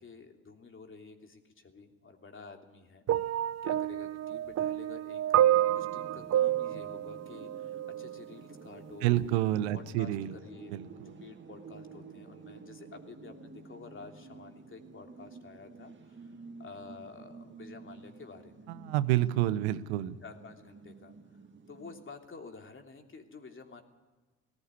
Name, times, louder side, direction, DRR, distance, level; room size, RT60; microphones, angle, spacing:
voice 1, 0.0-3.0 3.6-5.2 5.7-18.7 20.2-21.1 21.7-23.8, left 4 dB, 40° left, 4 dB, 3.1 m, -50 dB
sound 1, 3.1-8.2 9.1-9.3, right 12 dB, 55° right, 0.7 m, -29 dB
sound 2, 5.5-22.0, right 4 dB, 35° right, 2.0 m, -51 dB
voice 2, 9.0-10.3 10.7-11.1 18.7-20.2, right 14 dB, 90° right, 15 dB, 0.7 m, -29 dB
18.5 x 15.5 x 9.8 m, 1.3 s
hypercardioid pair, 55°, 32 cm